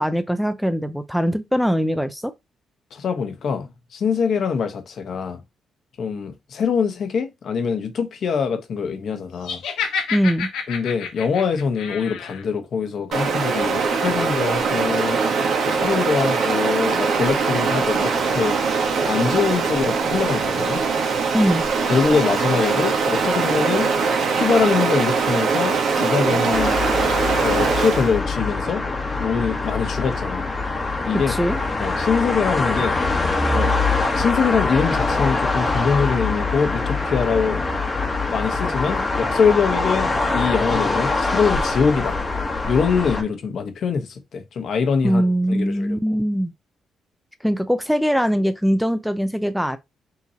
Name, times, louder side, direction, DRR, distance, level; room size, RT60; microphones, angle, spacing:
voice 1, 0.0-2.3 10.1-10.5 21.3-21.6 31.3-31.6 45.0-46.5 47.4-49.8, equal, ahead, 0.4 m, -21 dB
voice 2, 2.9-5.4 6.0-9.6 10.7-15.2 15.6-18.6 19.0-20.8 21.9-23.9 24.3-26.8 27.4-28.8 29.2-30.4 31.0-31.4 31.8-33.0 33.5-33.9 34.1-37.6 38.3-42.2 42.7-46.0, left 6 dB, 60° left, 1.0 m, -23 dB
Laughter, 9.4-12.4, left 6 dB, 85° left, 1.2 m, -29 dB
Stream, 13.1-28.2, right 5 dB, 65° right, 1.2 m, -21 dB
sound 1, 26.5-43.2, left 3 dB, 25° left, 1.1 m, -23 dB
5.8 x 2.9 x 2.8 m
cardioid pair, 90°, 0 cm